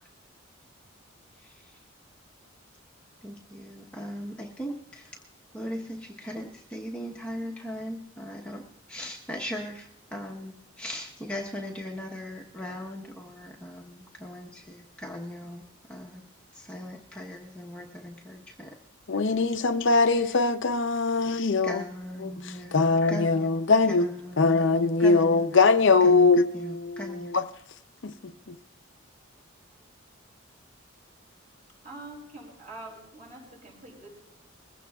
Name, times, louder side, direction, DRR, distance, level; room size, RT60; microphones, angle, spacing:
voice 1, 1.4-1.8 3.2-5.2 5.5-8.6 8.9-16.2 16.5-18.7 19.9-20.3 21.6-23.5 23.9-25.6 26.0-26.3 26.5-27.4, left 1 dB, 5° left, 1.0 m, -39 dB
voice 2, 19.1-21.8 22.2-24.1 24.4-27.4 28.0-28.6, left 3 dB, 60° left, 0.6 m, -22 dB
voice 3, 31.8-34.1, right 2 dB, 40° right, 5.8 m, -44 dB
21.5 x 16.0 x 2.4 m
head